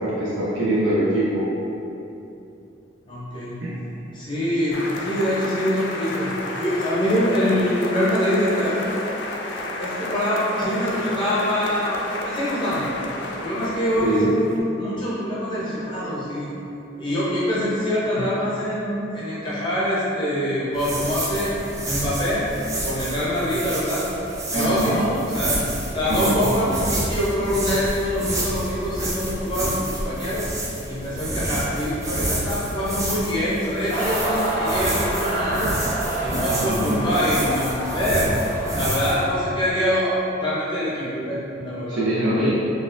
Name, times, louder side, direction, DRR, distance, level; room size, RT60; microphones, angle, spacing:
voice 1, 0.0-1.5 3.6-3.7 14.0-14.3 24.5-25.0 26.1-26.7 36.6-37.0 41.9-42.5, right 1 dB, 80° right, -9 dB, 0.6 m, -23 dB
voice 2, 3.0-3.6 4.1-6.3 6.6-8.9 9.8-12.8 13.4-16.5 17.0-21.6 21.9-22.5 22.8-24.1 24.5-25.6 25.9-30.5 30.9-35.7 36.1-38.3 38.8-42.1, equal, 25° left, -9 dB, 0.7 m, -24 dB
sound 1, 4.7-14.6, left 2 dB, 70° left, 0.4 m, -32 dB
sound 2, 20.7-39.1, right 1 dB, 15° right, 0.3 m, -29 dB
sound 3, 33.9-39.5, right 1 dB, 45° right, 1.2 m, -28 dB
3.9 x 2.5 x 2.5 m, 2.9 s
head